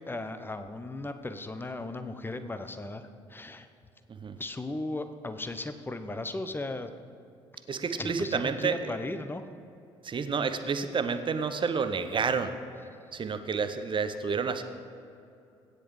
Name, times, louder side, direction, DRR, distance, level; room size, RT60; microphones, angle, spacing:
voice 1, 0.0-3.7 4.4-6.9 8.0-9.4, left 2 dB, 15° left, 9 dB, 0.8 m, -36 dB
voice 2, 7.7-8.9 10.0-12.5 13.1-14.6, right 5 dB, 35° right, 9 dB, 0.8 m, -30 dB
16.5 x 9.9 x 3.2 m, 2.6 s
figure-of-eight pair, 50°, 15 cm